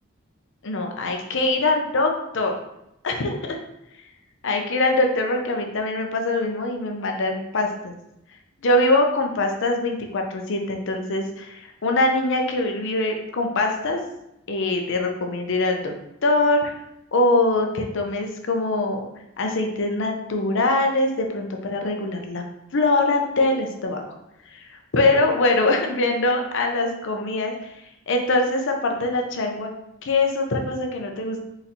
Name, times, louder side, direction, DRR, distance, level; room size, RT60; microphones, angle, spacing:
voice 1, 0.6-2.5 3.0-3.6 4.4-7.9 8.6-14.0 14.5-15.9 16.2-16.8 17.1-19.1 19.4-22.4 22.7-24.0 24.5-27.7 28.1-29.7 30.0-31.4, left 2 dB, 65° left, 3 dB, 0.7 m, -23 dB
4.2 x 4.0 x 2.8 m, 0.85 s
head